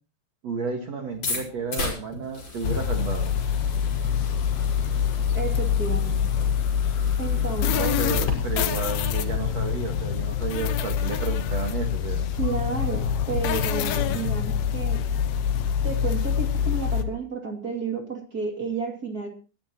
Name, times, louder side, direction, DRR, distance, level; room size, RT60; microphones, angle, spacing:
voice 1, 0.4-3.3 7.6-12.3, right 4 dB, 55° right, 4 dB, 1.9 m, -32 dB
sound 1, 1.1-8.3, left 2 dB, 30° left, 6.4 m, -36 dB
sound 2, 2.6-17.0, left 8 dB, 70° left, 2.4 m, -25 dB
voice 2, 5.3-6.3 7.2-8.0 12.3-15.0 15.8-19.3, right 4 dB, 30° right, 3 dB, 2.0 m, -31 dB
21.0 x 14.0 x 3.0 m, 0.35 s
omnidirectional pair, 5.5 m